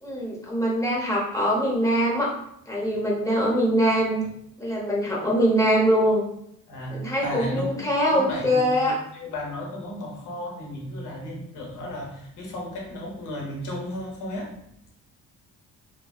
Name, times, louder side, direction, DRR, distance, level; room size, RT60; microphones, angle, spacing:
voice 1, 0.0-2.3 2.7-4.2 4.6-6.2 6.9-9.0, equal, 10° left, -4 dB, 0.8 m, -23 dB
voice 2, 6.7-14.6, left 1 dB, 80° left, 0 dB, 0.8 m, -34 dB
2.6 x 2.3 x 2.3 m, 0.72 s
cardioid pair, 90°, 30 cm